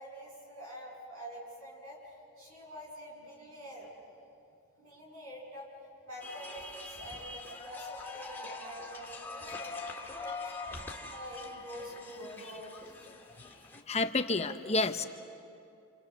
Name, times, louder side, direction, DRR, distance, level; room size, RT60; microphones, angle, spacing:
voice 1, 0.0-3.9 4.8-5.7 6.0-10.6 10.9-13.1, equal, 85° right, -1 dB, 8.0 m, -46 dB
sound 1, 6.2-13.8, left 3 dB, 10° left, 1.9 m, -44 dB
voice 2, 13.4-15.1, left 3 dB, 30° left, 8 dB, 0.8 m, -31 dB
28.5 x 28.0 x 6.9 m, 2.6 s
head